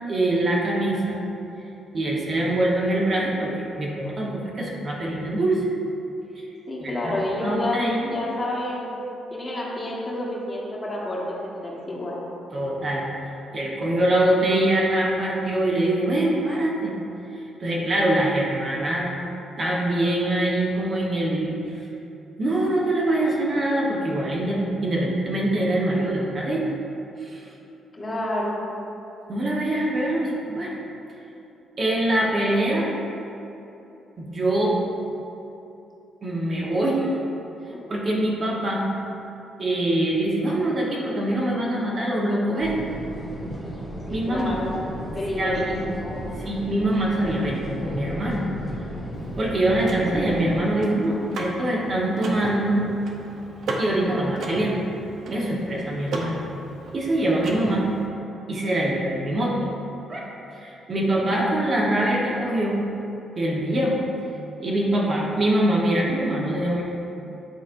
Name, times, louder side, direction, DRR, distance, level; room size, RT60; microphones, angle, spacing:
voice 1, 0.1-1.2 1.9-5.7 6.8-8.1 12.5-13.0 13.5-16.9 17.3-19.1 19.6-21.6 22.4-26.7 27.2-27.5 29.3-30.7 31.8-32.9 34.2-34.8 36.2-37.2 37.9-38.9 39.6-42.8 44.1-44.6 45.4-45.8 46.4-48.5 49.4-52.8 53.8-54.7 55.3-56.4 56.9-57.9 58.5-59.6 60.1-60.3 60.5-62.8 63.4-64.0 64.6-66.8, right 1 dB, 40° right, -3 dB, 1.0 m, -24 dB
voice 2, 6.7-8.9 9.3-12.2 27.9-28.6 37.7-37.9 44.1-46.2, left 1 dB, 30° left, -5 dB, 1.4 m, -29 dB
sound 1, 42.6-50.6, equal, 5° left, 1.4 m, -35 dB
Car / Mechanisms, 49.1-58.1, right 2 dB, 70° right, 0.7 m, -35 dB
9.2 x 4.1 x 2.6 m, 2.9 s
cardioid pair, 90°, 0 cm